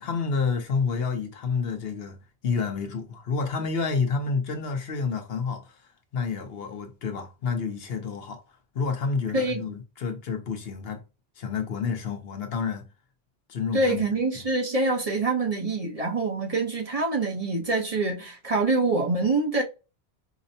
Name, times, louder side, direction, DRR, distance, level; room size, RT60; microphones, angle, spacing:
voice 1, 0.0-2.2 2.4-5.8 6.1-8.4 8.7-11.0 11.4-12.9 13.5-14.1, left 5 dB, 70° left, 1.0 m, -29 dB
voice 2, 13.7-19.6, right 2 dB, 40° right, 0.8 m, -25 dB
5.0 x 2.0 x 2.7 m
omnidirectional pair, 1.1 m